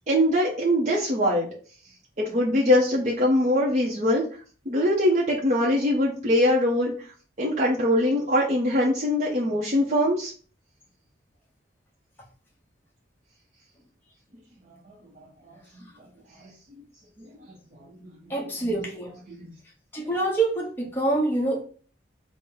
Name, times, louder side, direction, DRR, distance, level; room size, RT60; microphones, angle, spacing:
voice 1, 0.1-1.5 2.2-4.2 4.7-6.9 7.4-10.3 19.3-19.5, left 1 dB, 40° right, -4 dB, 0.6 m, -22 dB
voice 2, 18.3-19.1 19.9-21.6, right 2 dB, 10° left, -3 dB, 0.8 m, -26 dB
4.2 x 2.0 x 3.7 m, 0.41 s
head